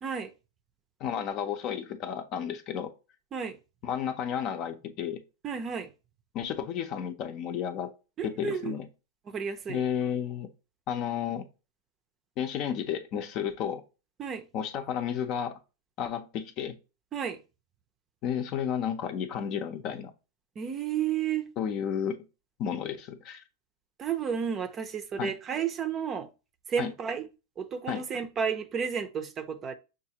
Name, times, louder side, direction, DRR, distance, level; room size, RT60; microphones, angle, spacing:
voice 1, 0.0-0.3 3.3-3.6 5.4-5.9 8.2-8.8 9.3-9.8 14.2-14.4 17.1-17.4 20.6-21.5 24.0-26.3 26.7-27.3 27.6-29.7, right 7 dB, 30° right, 0.5 m, -32 dB
voice 2, 1.0-2.9 3.8-5.2 6.3-7.9 8.2-8.9 9.7-10.5 10.9-11.5 12.4-13.8 14.5-15.6 16.0-16.8 18.2-20.1 21.6-22.2 22.6-23.4 25.2-25.3 26.8-26.9 27.9-28.0, left 8 dB, 45° left, 0.6 m, -32 dB
6.2 x 2.4 x 2.8 m
hypercardioid pair, 120°, 0 cm